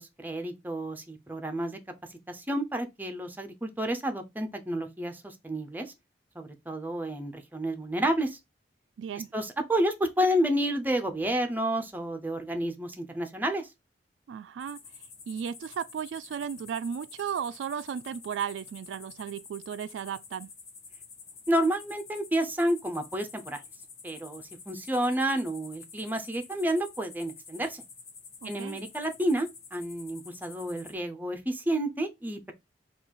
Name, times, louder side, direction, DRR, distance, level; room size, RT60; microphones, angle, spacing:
voice 1, 0.0-1.8 2.1-5.9 6.4-8.4 9.3-13.7 21.5-23.6 24.0-27.8 28.4-32.5, right 1 dB, 10° right, 0.6 m, -30 dB
voice 2, 9.0-9.3 14.3-14.8 15.3-20.5 28.4-28.8, right 8 dB, 85° right, 0.3 m, -35 dB
sound 1, 14.6-30.9, left 5 dB, 40° left, 1.2 m, -49 dB
3.9 x 2.4 x 4.5 m
head